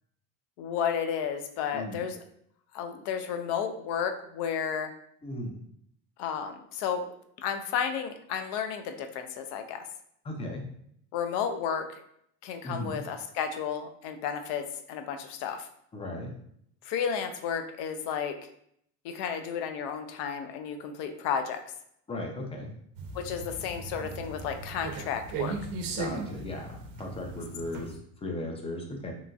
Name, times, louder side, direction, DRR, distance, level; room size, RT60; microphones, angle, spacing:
voice 1, 0.6-2.2 2.7-4.9 6.2-7.0 7.4-9.8 11.1-11.9 12.4-15.7 16.8-18.4 19.0-21.6 23.1-25.5, left 7 dB, 70° left, 7 dB, 0.5 m, -32 dB
voice 2, 1.7-2.1 5.2-5.5 10.2-10.6 12.6-13.0 15.9-16.3 22.1-22.7 25.9-29.1, left 1 dB, 15° left, 2 dB, 0.4 m, -37 dB
sound 1, 22.9-28.0, right 4 dB, 55° right, 0.6 m, -37 dB
2.9 x 2.5 x 2.3 m, 0.70 s
supercardioid pair, 100°, 41 cm